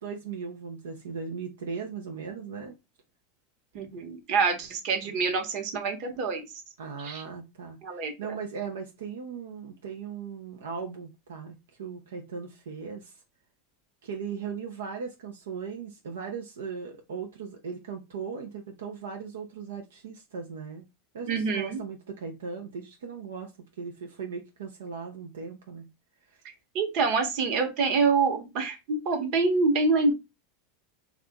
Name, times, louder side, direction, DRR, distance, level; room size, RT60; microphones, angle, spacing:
voice 1, 0.0-2.8 6.8-13.2 14.0-20.9 21.1-25.9 26.3-26.4, right 5 dB, 85° right, 0.5 m, -38 dB
voice 2, 3.7-6.5 7.0-7.2 7.8-8.4 21.3-21.8 26.7-30.1, right 4 dB, 55° right, 1.0 m, -26 dB
2.9 x 2.4 x 3.5 m
hypercardioid pair, 110°, 0 cm